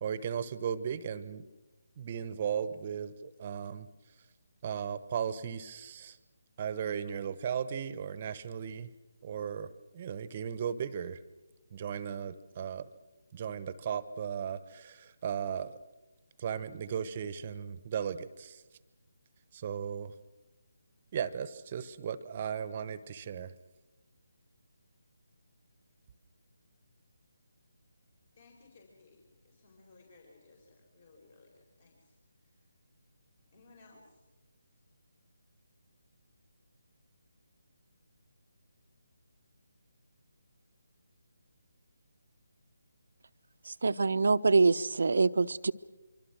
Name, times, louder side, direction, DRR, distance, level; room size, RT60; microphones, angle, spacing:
voice 1, 0.0-1.5 2.0-3.9 4.6-6.2 6.6-8.9 9.2-11.2 11.7-12.9 13.3-15.8 16.4-18.6 19.5-20.1 21.1-23.5, right 8 dB, 35° right, 15 dB, 1.1 m, -36 dB
voice 2, 28.3-32.1 32.4-32.6 33.5-34.2, left 3 dB, 45° left, 0 dB, 4.8 m, -60 dB
voice 3, 43.7-45.7, right 4 dB, 60° right, 13 dB, 0.8 m, -25 dB
25.0 x 24.5 x 6.3 m, 1.1 s
figure-of-eight pair, 150°, 0 cm